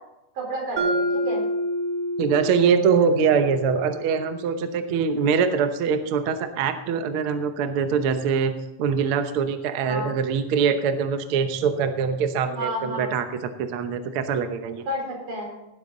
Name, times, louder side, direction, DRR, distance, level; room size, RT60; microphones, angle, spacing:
voice 1, 0.4-1.4 9.8-10.1 12.6-13.1 14.9-15.5, right 1 dB, 90° right, -1 dB, 5.6 m, -30 dB
Mallet percussion, 0.8-4.8, equal, 40° right, 1.7 m, -28 dB
voice 2, 2.2-14.9, right 6 dB, 65° right, 8 dB, 1.4 m, -23 dB
17.0 x 8.0 x 3.9 m, 0.89 s
omnidirectional pair, 3.6 m